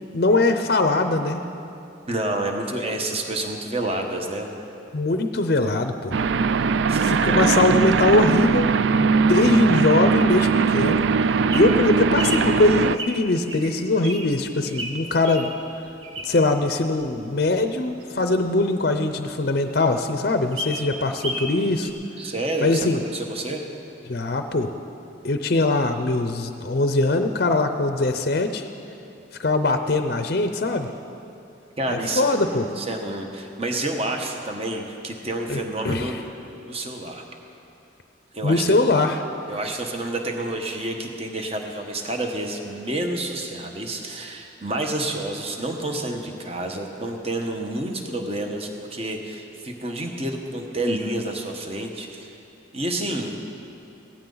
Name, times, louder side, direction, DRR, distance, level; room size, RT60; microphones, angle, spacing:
voice 1, 0.1-1.4 4.9-6.2 7.0-11.0 11.5-15.5 16.2-21.9 22.6-23.0 24.1-24.7 25.2-28.7 29.4-30.9 31.9-32.7 35.5-36.1 38.4-39.2, left 2 dB, 50° left, 7 dB, 0.5 m, -22 dB
voice 2, 2.1-4.7 6.9-7.7 22.2-22.9 23.1-23.7 31.8-36.2 36.7-37.2 38.3-38.8 39.5-52.4 52.7-53.4, right 1 dB, 30° right, 3 dB, 1.1 m, -29 dB
sound 1, 6.1-13.0, right 5 dB, 70° right, 0.3 m, -20 dB
Bird vocalization bird call bird song, 11.4-16.6 17.0-19.2 19.5-19.6 19.9-20.0 20.3-21.5 21.8-21.9, right 1 dB, 90° right, 1.5 m, -34 dB
16.5 x 14.5 x 3.9 m, 2.8 s
head